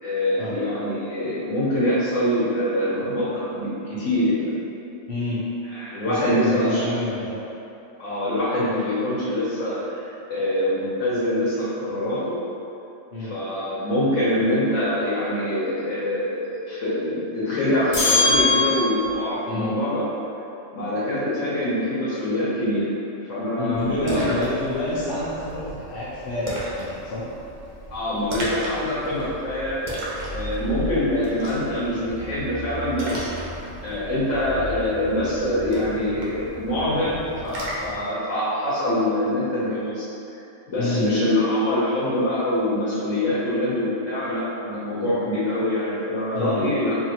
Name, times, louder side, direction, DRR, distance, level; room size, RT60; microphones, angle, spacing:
voice 1, 0.0-4.6 5.7-6.8 8.0-12.4 13.2-20.0 20.7-22.9 23.3-24.3 27.9-29.8 30.3-33.3 33.8-40.0 40.7-47.0, left 1 dB, 75° left, -10 dB, 1.3 m, -24 dB
voice 2, 5.1-5.4 6.1-7.4 13.1-13.3 19.5-19.8 23.6-27.2 40.8-41.1 46.3-46.7, left 1 dB, 55° left, -9 dB, 0.8 m, -28 dB
sound 1, 17.9-19.3, left 2 dB, 25° left, 1.1 m, -21 dB
Splash splatter, 23.7-38.0, right 1 dB, 50° right, 0.6 m, -35 dB
4.2 x 2.8 x 2.9 m, 2.7 s
omnidirectional pair, 1.3 m